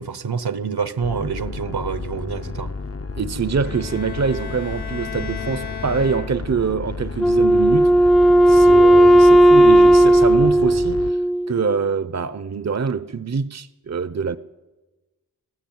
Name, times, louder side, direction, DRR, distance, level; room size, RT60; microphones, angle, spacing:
voice 1, 0.0-2.7, right 5 dB, 75° right, 1.1 m, -27 dB
sound 1, 1.0-11.1, left 4 dB, 40° left, 0.8 m, -32 dB
voice 2, 3.2-7.9 8.5-11.2 11.5-14.4, right 5 dB, 45° right, 0.7 m, -24 dB
Bowed string instrument, 3.6-6.8, left 7 dB, 80° left, 0.7 m, -35 dB
Wind instrument woodwind instrument, 7.2-11.7, right 1 dB, ahead, 0.6 m, -13 dB
21.5 x 14.5 x 9.3 m
wide cardioid pair, 50°, 39 cm